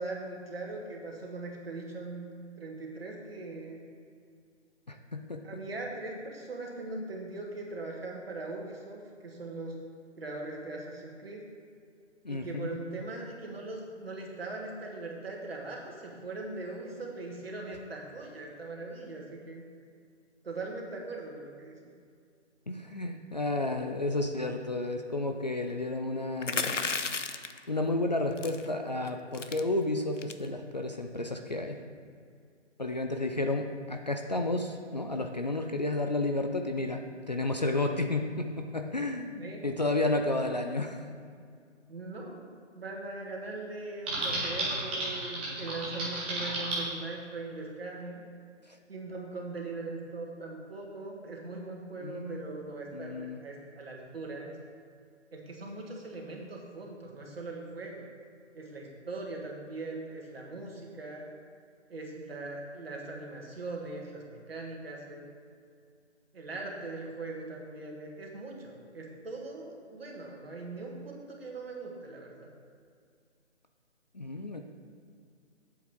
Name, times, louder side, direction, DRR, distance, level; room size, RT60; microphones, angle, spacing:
voice 1, 0.0-2.2 2.6-3.8 5.4-9.8 10.2-11.4 12.3-19.6 20.4-21.8 39.4-39.6 41.9-42.5 42.7-48.2 48.9-54.6 55.3-58.1 58.5-61.3 61.9-65.2 66.3-72.5, right 2 dB, 55° right, 0 dB, 2.0 m, -40 dB
voice 2, 4.9-5.4 12.2-12.7 22.7-26.7 27.7-31.8 32.8-41.0 48.7-48.8 52.0-52.4 52.9-53.4 74.1-74.6, left 2 dB, 35° left, 4 dB, 0.5 m, -31 dB
sound 1, 26.4-27.6 28.4-28.7 29.0-29.1 29.3-29.6 30.2-30.5, left 4 dB, 85° left, 0.7 m, -32 dB
Typing, 44.1-46.8, right 2 dB, 10° right, 0.8 m, -32 dB
9.2 x 7.6 x 3.7 m, 2.3 s
figure-of-eight pair, 150°, 36 cm